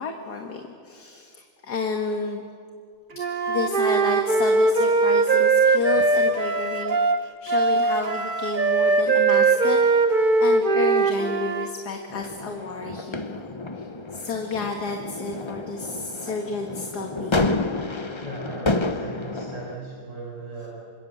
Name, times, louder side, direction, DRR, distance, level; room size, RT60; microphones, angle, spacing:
voice 1, 0.0-2.4 3.5-7.0 7.4-9.8 10.4-17.3, left 4 dB, 65° left, 3 dB, 2.2 m, -31 dB
Wind instrument woodwind instrument, 3.2-11.7, right 3 dB, 35° right, 0.8 m, -20 dB
sound 1, 12.1-19.8, left 2 dB, 25° left, 0.6 m, -30 dB
voice 2, 18.1-20.7, right 3 dB, 85° right, -4 dB, 6.3 m, -38 dB
27.0 x 26.5 x 7.9 m, 2.2 s
omnidirectional pair, 1.9 m